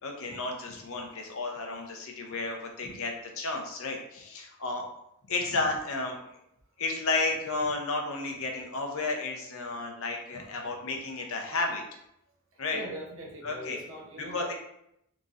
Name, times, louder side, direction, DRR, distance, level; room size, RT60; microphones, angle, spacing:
voice 1, 0.0-4.9 5.3-6.2 6.8-11.8 12.6-12.8 13.4-13.8 14.2-14.5, left 3 dB, 65° left, 2 dB, 0.8 m, -32 dB
voice 2, 12.7-14.5, equal, 60° right, -2 dB, 1.1 m, -41 dB
4.0 x 3.0 x 3.7 m, 0.79 s
head